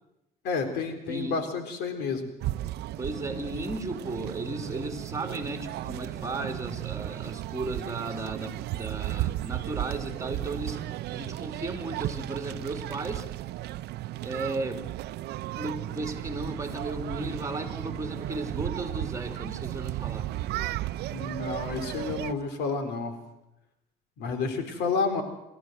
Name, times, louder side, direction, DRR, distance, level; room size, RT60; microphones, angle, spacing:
voice 1, 0.4-2.3 21.1-23.1 24.2-25.2, left 4 dB, 80° left, 8 dB, 3.7 m, -30 dB
voice 2, 1.1-1.4 3.0-10.8 11.1-13.3 14.2-14.9 15.6-20.3, right 2 dB, 20° right, 5 dB, 2.8 m, -35 dB
sound 1, 2.4-22.3, right 15 dB, 75° right, 0.7 m, -35 dB
29.5 x 13.0 x 7.8 m, 0.91 s
cardioid pair, 110°, 17 cm